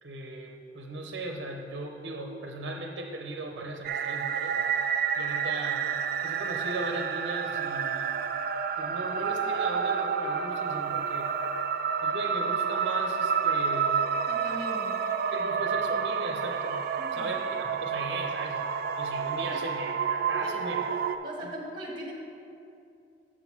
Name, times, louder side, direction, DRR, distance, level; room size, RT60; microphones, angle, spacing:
voice 1, 0.0-4.6 5.2-5.9 6.2-8.1 8.8-11.3 12.0-14.0 15.3-16.8 17.1-20.9, right 2 dB, 75° right, 2 dB, 0.7 m, -37 dB
sound 1, 3.8-21.2, right 6 dB, 55° right, 0.3 m, -29 dB
voice 2, 14.3-15.0 17.0-17.3 20.7-20.9 21.2-22.1, equal, 30° right, -2 dB, 1.4 m, -40 dB
6.2 x 6.2 x 5.8 m, 2.5 s
head